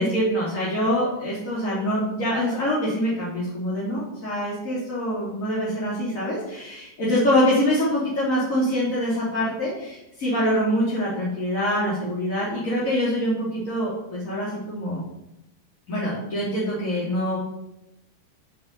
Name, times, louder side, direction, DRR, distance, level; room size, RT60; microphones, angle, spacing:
voice 1, 0.0-15.0 15.9-17.4, equal, 45° left, -8 dB, 3.1 m, -25 dB
8.8 x 6.7 x 4.2 m, 0.89 s
figure-of-eight pair, 90°, 0 cm